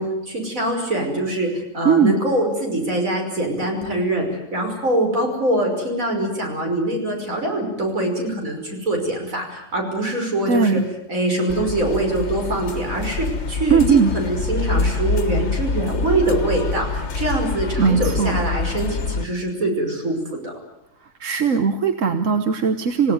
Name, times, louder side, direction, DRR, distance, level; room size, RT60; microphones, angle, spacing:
voice 1, 0.0-4.2 4.5-10.8 11.1-20.5, right 1 dB, 90° right, 2 dB, 6.2 m, -23 dB
voice 2, 10.5-10.8 13.7-14.1 17.8-18.4 21.2-23.1, right 6 dB, 75° right, 8 dB, 1.5 m, -18 dB
sound 1, 11.5-19.2, left 4 dB, 60° left, 1.4 m, -25 dB
27.5 x 17.0 x 9.6 m, 0.85 s
omnidirectional pair, 1.4 m